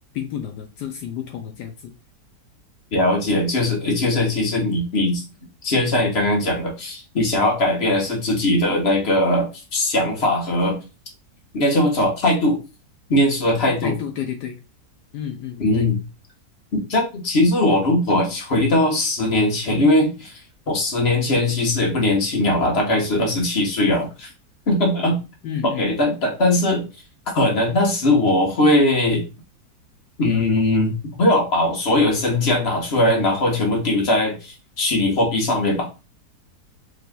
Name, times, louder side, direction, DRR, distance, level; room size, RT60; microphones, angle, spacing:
voice 1, 0.1-1.9 13.8-14.5 15.1-15.9 25.4-25.9, left 9 dB, 80° left, 4 dB, 1.2 m, -31 dB
voice 2, 2.9-5.2 5.6-10.8 11.5-12.6 13.1-14.0 15.6-16.0 16.7-20.4 20.7-24.3 24.7-25.2 25.6-26.9 27.3-29.2 30.2-35.9, left 1 dB, 40° left, 0 dB, 1.4 m, -20 dB
4.9 x 3.2 x 2.3 m, 0.29 s
omnidirectional pair, 1.8 m